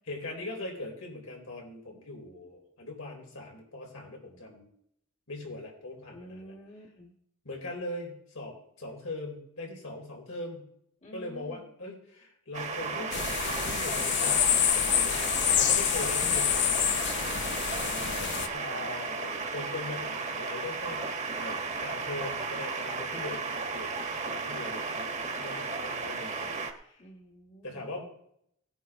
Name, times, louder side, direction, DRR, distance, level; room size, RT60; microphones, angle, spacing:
voice 1, 0.0-4.7 5.3-6.5 7.4-10.7 11.1-16.9 18.5-25.1 25.4-27.0 27.6-28.0, left 2 dB, 90° left, 0 dB, 4.0 m, -41 dB
voice 2, 6.1-7.1 11.0-11.7 17.3-18.5 27.0-27.8, equal, 35° left, 1 dB, 1.4 m, -50 dB
sound 1, 12.5-26.7, right 4 dB, 35° right, 1.2 m, -34 dB
sound 2, 13.1-18.5, left 10 dB, 60° left, 0.7 m, -27 dB
18.0 x 9.3 x 3.6 m, 0.72 s
head